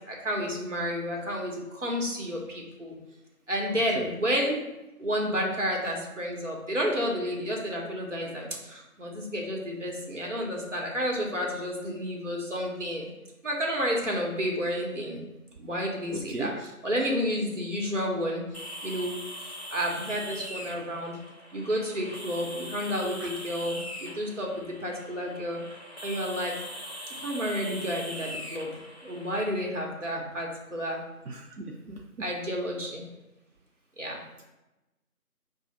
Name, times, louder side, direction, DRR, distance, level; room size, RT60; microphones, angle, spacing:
voice 1, 0.1-2.9 3.5-4.6 5.0-13.1 13.4-15.3 15.6-18.4 18.8-19.1 19.7-21.2 21.5-25.6 26.0-26.6 27.2-28.7 29.0-31.0 32.2-33.0 34.0-34.2, equal, 55° right, -1 dB, 0.9 m, -31 dB
voice 2, 3.7-4.1 16.1-16.6 23.2-23.3 31.3-32.3, right 3 dB, 85° right, 1 dB, 0.6 m, -38 dB
sound 1, 18.5-29.4, equal, 45° left, 0.6 m, -41 dB
4.9 x 2.0 x 3.1 m, 1.0 s
figure-of-eight pair, 175°, 44 cm